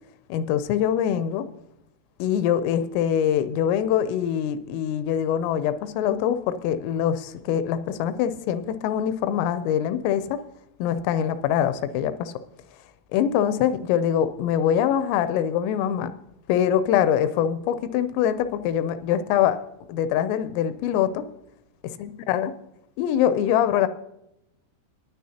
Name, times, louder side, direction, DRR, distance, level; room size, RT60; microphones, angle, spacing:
voice 1, 0.3-1.5 2.2-10.4 10.8-12.3 13.1-16.1 16.5-19.6 19.9-21.2 22.0-22.5 23.0-23.9, left 9 dB, 85° left, 12 dB, 3.1 m, -23 dB
18.5 x 9.9 x 2.8 m, 0.84 s
omnidirectional pair, 5.8 m